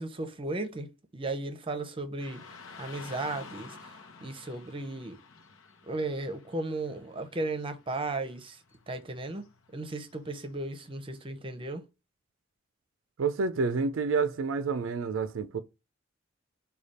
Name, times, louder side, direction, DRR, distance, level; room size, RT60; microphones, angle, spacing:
voice 1, 0.0-2.4 2.8-5.2 5.8-8.6 8.9-9.4 9.7-11.8, right 2 dB, 25° right, 0.7 m, -35 dB
Car passing by / Traffic noise roadway noise, 2.2-11.2, left 4 dB, 80° left, 0.8 m, -51 dB
voice 2, 13.2-15.6, right 4 dB, 70° right, 0.4 m, -29 dB
4.9 x 2.3 x 4.1 m
head